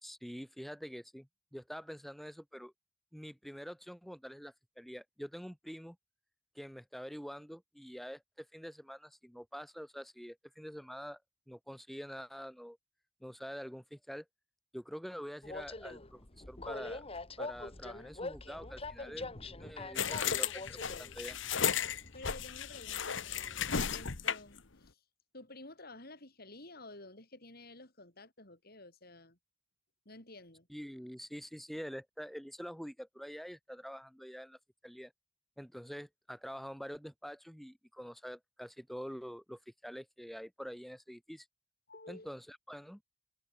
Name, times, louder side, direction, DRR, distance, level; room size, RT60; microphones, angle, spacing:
voice 1, 0.0-2.7 3.1-6.0 6.5-11.2 11.5-12.8 13.2-14.2 14.7-17.0 17.4-21.4 30.7-35.1 35.6-41.5 42.1-43.0, equal, ahead, 1.4 m, -46 dB
Train, 15.4-24.1, left 2 dB, 30° left, 1.9 m, -45 dB
sound 1, 19.9-24.6, left 7 dB, 65° left, 1.3 m, -34 dB
voice 2, 22.1-25.0 25.3-29.4 30.0-30.7 41.9-42.3, left 2 dB, 50° left, 6.3 m, -52 dB
head